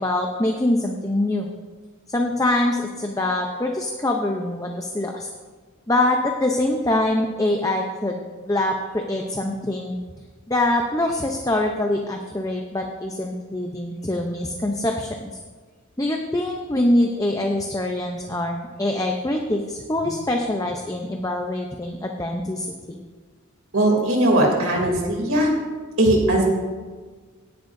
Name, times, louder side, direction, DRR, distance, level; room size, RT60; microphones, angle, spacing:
voice 1, 0.0-1.5 2.1-5.3 5.9-8.2 8.4-10.0 10.5-15.3 16.0-23.0, left 1 dB, 15° left, 2 dB, 0.6 m, -24 dB
voice 2, 23.7-25.5 26.0-26.5, right 1 dB, 70° right, 0 dB, 2.9 m, -19 dB
18.0 x 10.5 x 2.7 m, 1.4 s
head